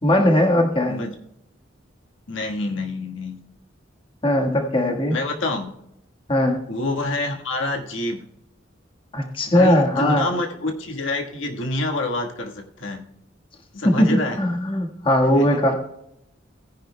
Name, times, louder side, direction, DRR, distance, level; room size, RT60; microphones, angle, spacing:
voice 1, 0.0-1.0 4.2-5.2 6.3-6.6 9.1-10.3 13.8-15.8, left 1 dB, 30° left, 2 dB, 1.5 m, -19 dB
voice 2, 2.3-3.4 5.1-5.7 6.7-8.2 9.5-13.1 13.7-14.4 15.3-15.6, left 2 dB, 80° left, 2 dB, 1.5 m, -27 dB
17.5 x 10.5 x 2.2 m, 0.79 s
head